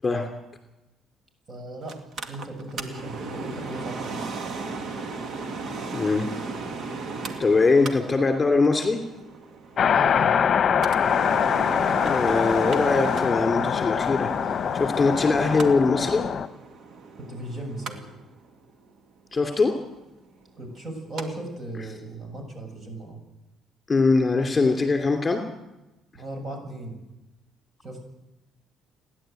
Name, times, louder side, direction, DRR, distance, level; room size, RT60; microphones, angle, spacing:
voice 1, 1.5-2.0 2.3-4.4 9.9-10.4 17.2-18.0 20.6-23.2 26.1-27.0 27.8-28.0, right 1 dB, 35° right, 5 dB, 7.2 m, -37 dB
Mechanical fan, 1.9-21.3 21.6-21.7, right 4 dB, 50° right, 2.2 m, -36 dB
voice 2, 5.9-6.3 7.4-9.0 12.0-14.3 14.7-16.3 19.3-19.7 23.9-25.4, left 3 dB, 25° left, 5 dB, 2.8 m, -22 dB
sound 1, 9.8-16.5, left 7 dB, 45° left, 1.0 m, -23 dB
29.5 x 11.0 x 9.1 m, 0.98 s
cardioid pair, 110°, 0 cm